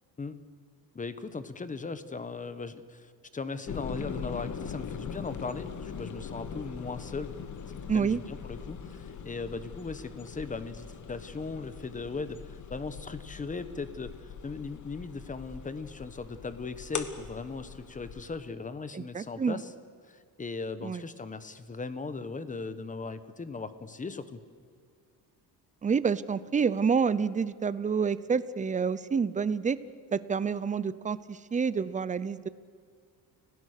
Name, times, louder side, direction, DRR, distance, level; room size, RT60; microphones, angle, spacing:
voice 1, 0.9-7.3 7.9-19.7 20.1-24.4, left 4 dB, 20° left, 13 dB, 1.1 m, -38 dB
sound 1, 3.7-18.4, left 6 dB, 45° left, 1.6 m, -41 dB
voice 2, 7.9-8.2 18.9-19.6 20.8-21.0 25.8-29.8 30.1-32.5, right 6 dB, 20° right, 16 dB, 0.6 m, -28 dB
30.0 x 17.5 x 6.7 m, 2.1 s
cardioid pair, 135°, 41 cm